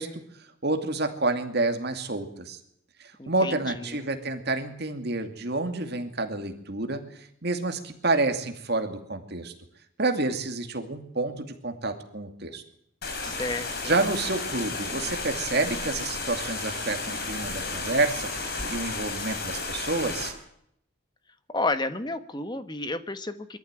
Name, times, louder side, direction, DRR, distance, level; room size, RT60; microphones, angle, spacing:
voice 1, 0.0-2.6 3.0-9.5 10.0-12.6 13.8-20.4, right 2 dB, 50° right, 6 dB, 2.5 m, -29 dB
voice 2, 3.2-4.0 13.2-13.9 21.5-23.6, left 2 dB, 20° left, 11 dB, 1.2 m, -31 dB
sound 1, 13.0-20.3, left 3 dB, 50° left, 3.9 m, -33 dB
22.5 x 14.0 x 9.0 m, 0.72 s
head